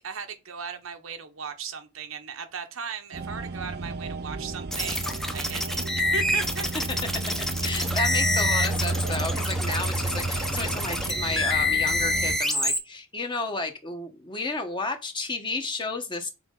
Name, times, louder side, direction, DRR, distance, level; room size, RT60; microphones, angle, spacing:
voice 1, 0.0-5.1 5.3-6.7, right 6 dB, 85° right, 0.9 m, -37 dB
sound 1, 3.1-12.4, right 2 dB, 50° right, 0.6 m, -32 dB
sound 2, 4.7-12.8, left 1 dB, ahead, 0.7 m, -27 dB
voice 2, 7.4-16.3, left 3 dB, 25° left, 1.1 m, -32 dB
6.0 x 4.2 x 3.8 m
head